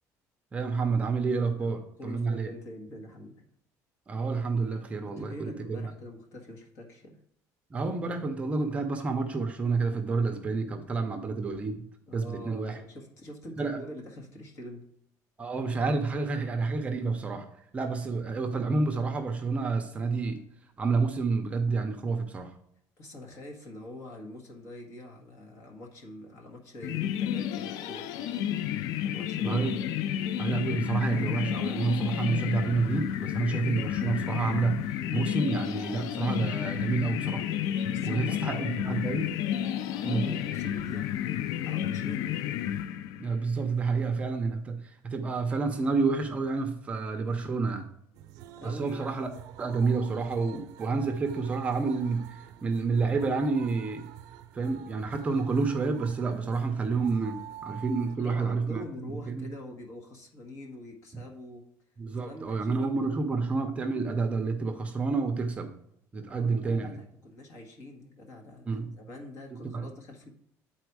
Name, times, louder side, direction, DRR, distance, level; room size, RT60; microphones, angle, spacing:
voice 1, 0.5-2.5 4.1-5.9 7.7-11.8 12.1-12.8 13.6-13.8 15.4-17.5 17.7-20.4 20.8-22.5 29.4-29.8 30.4-37.5 38.0-39.3 40.0-40.3 43.2-47.9 48.6-49.3 49.6-54.0 54.5-58.8 59.3-59.5 62.0-65.7 66.1-67.0 68.7-68.9 69.7-69.8, right 4 dB, 20° right, 5 dB, 0.6 m, -29 dB
voice 2, 2.0-3.4 5.0-7.2 12.1-14.8 23.0-28.4 29.0-29.7 37.9-42.3 48.6-49.3 58.2-61.6 62.1-63.4 66.3-70.3, left 1 dB, 50° left, 1 dB, 1.7 m, -45 dB
sound 1, 26.8-43.4, left 10 dB, 70° left, 0.4 m, -31 dB
sound 2, 48.1-58.2, right 11 dB, 80° right, 0.5 m, -47 dB
9.0 x 4.3 x 4.7 m, 0.72 s
cardioid pair, 165°, 6 cm